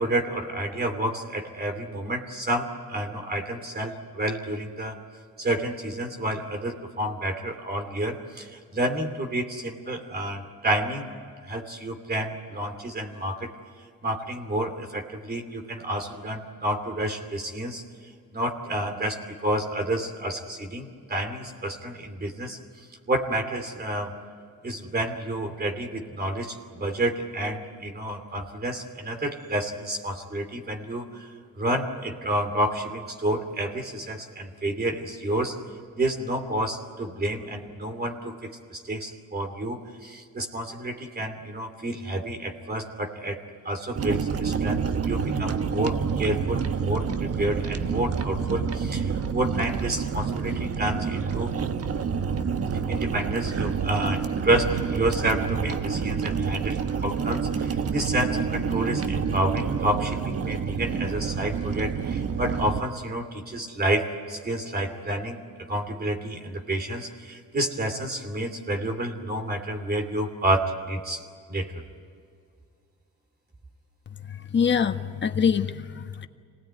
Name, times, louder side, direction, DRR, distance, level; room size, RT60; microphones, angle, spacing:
voice 1, 0.0-5.0 5.4-11.1 11.5-13.5 14.0-17.8 18.3-22.6 23.1-24.1 24.6-31.3 31.6-35.5 35.9-43.4 43.6-51.5 52.9-65.4 65.7-71.2 71.5-71.8, right 1 dB, 30° right, 4 dB, 2.9 m, -29 dB
sound 1, 44.0-62.8, right 6 dB, 50° right, 1.3 m, -28 dB
voice 2, 74.5-76.3, left 7 dB, 40° left, 7 dB, 1.4 m, -24 dB
24.5 x 19.0 x 9.4 m, 2.2 s
cardioid pair, 90°, 30 cm